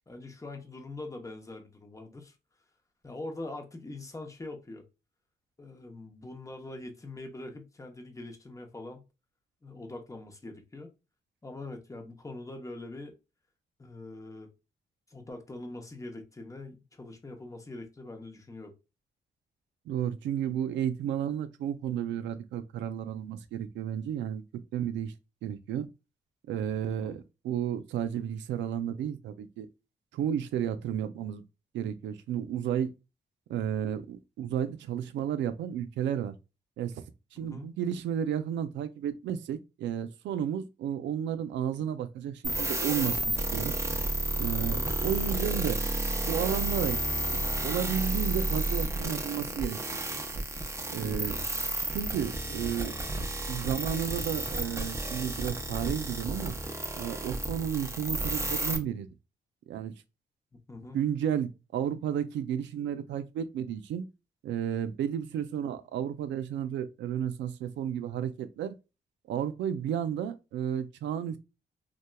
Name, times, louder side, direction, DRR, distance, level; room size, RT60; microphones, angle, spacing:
voice 1, 0.1-2.3 3.0-4.8 5.6-9.1 9.6-10.9 11.4-13.2 13.8-14.5 15.1-18.7 26.9-27.2 37.4-37.7 44.6-44.9 51.0-51.3 60.7-61.0, left 2 dB, 15° left, 0.7 m, -43 dB
voice 2, 19.9-24.4 24.7-25.1 25.4-25.9 26.5-29.7 30.1-31.4 31.7-32.9 33.5-36.4 36.8-37.0 37.3-43.8 44.4-45.8 46.2-47.0 47.3-49.8 50.9-51.3 51.9-52.9 53.5-56.6 56.9-59.1 59.7-59.9 60.9-64.0 64.4-68.7 69.3-71.4, right 9 dB, 90° right, 0.4 m, -32 dB
sound 1, 42.4-58.8, right 1 dB, 15° right, 0.5 m, -32 dB
2.9 x 2.2 x 2.2 m
cardioid pair, 80°, 18 cm